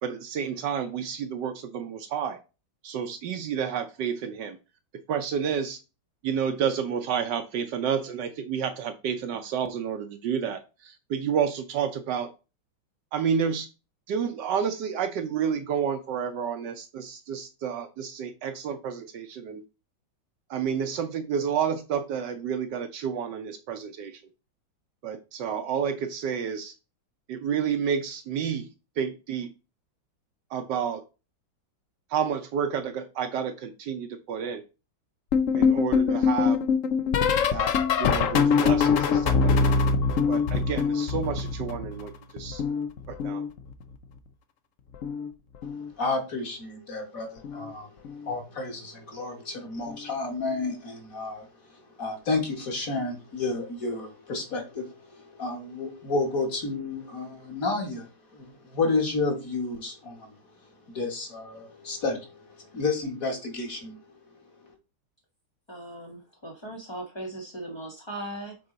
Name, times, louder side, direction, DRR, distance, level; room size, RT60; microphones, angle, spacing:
voice 1, 0.0-2.4 2.8-4.6 5.1-5.8 6.2-10.6 11.1-12.3 13.1-13.7 14.1-19.6 20.5-24.1 25.0-26.7 27.3-28.7 29.0-29.5 30.5-31.0 32.1-34.6 35.5-36.6 37.5-39.7 40.3-42.6 43.2-43.4, right 7 dB, 70° right, 8 dB, 1.2 m, -30 dB
sound 1, 35.3-42.1 42.4-43.9 44.9-45.3 45.5-45.9 47.4-47.7 48.0-48.3 49.9-50.0, left 5 dB, 75° left, 0.7 m, -24 dB
voice 2, 46.0-47.9 48.2-51.5 52.0-60.3 60.9-63.9, left 3 dB, 45° left, 2 dB, 2.0 m, -31 dB
voice 3, 65.7-68.6, right 1 dB, 30° left, -1 dB, 0.5 m, -38 dB
7.7 x 3.8 x 3.8 m, 0.31 s
omnidirectional pair, 2.1 m